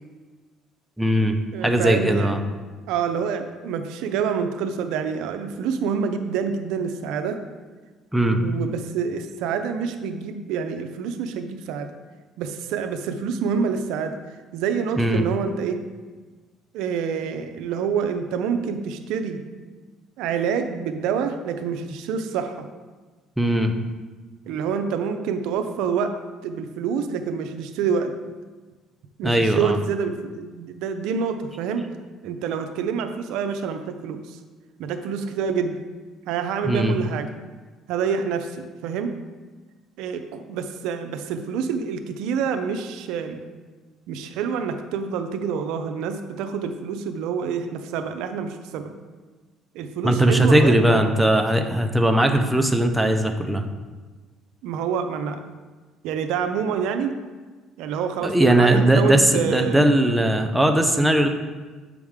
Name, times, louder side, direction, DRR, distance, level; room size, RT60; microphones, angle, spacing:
voice 1, 1.0-1.4 1.6-2.4 8.1-8.4 15.0-15.2 23.4-23.7 29.2-29.8 36.6-37.0 50.0-53.6 58.2-61.3, right 1 dB, 5° right, 4 dB, 0.6 m, -19 dB
voice 2, 1.5-2.4 2.9-7.4 8.3-11.9 12.4-14.2 14.5-15.8 16.7-19.4 20.2-22.7 24.5-26.1 26.4-28.1 29.2-31.9 32.2-34.4 34.8-35.8 36.3-37.3 37.9-39.1 40.0-43.4 44.1-48.9 49.7-51.1 54.6-55.4 56.0-57.1 57.8-59.9, right 6 dB, 80° right, 7 dB, 0.5 m, -27 dB
7.2 x 4.9 x 3.6 m, 1.3 s
cardioid pair, 100°, 0 cm